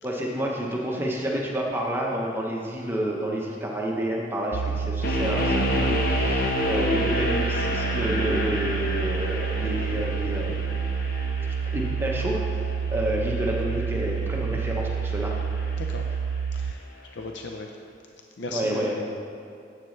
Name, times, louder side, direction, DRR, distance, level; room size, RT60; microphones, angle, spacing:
voice 1, 0.0-10.6 11.7-15.4 18.5-19.0, equal, 10° right, -2 dB, 0.9 m, -29 dB
sound 1, 4.5-16.7, right 6 dB, 65° right, 0.3 m, -29 dB
sound 2, 5.0-16.1, left 1 dB, 50° left, 1.0 m, -30 dB
voice 2, 15.8-16.1 16.5-16.8 17.1-17.7 18.4-19.0, left 2 dB, 75° left, 2 dB, 0.6 m, -36 dB
11.0 x 8.1 x 3.2 m, 2.4 s
head